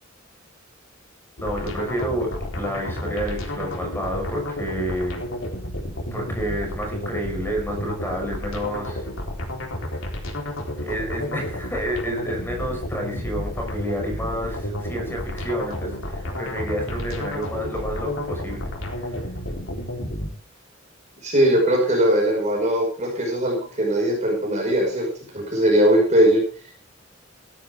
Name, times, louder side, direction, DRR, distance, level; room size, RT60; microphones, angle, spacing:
sound 1, 1.4-20.3, left 1 dB, 85° left, 4.0 m, -31 dB
voice 1, 1.4-5.2 6.1-9.1 9.9-10.2 10.8-19.2, equal, 10° left, 1 dB, 5.2 m, -30 dB
voice 2, 21.2-25.1 25.3-26.4, right 1 dB, 35° right, -1 dB, 5.8 m, -20 dB
17.0 x 12.0 x 3.7 m, 0.40 s
head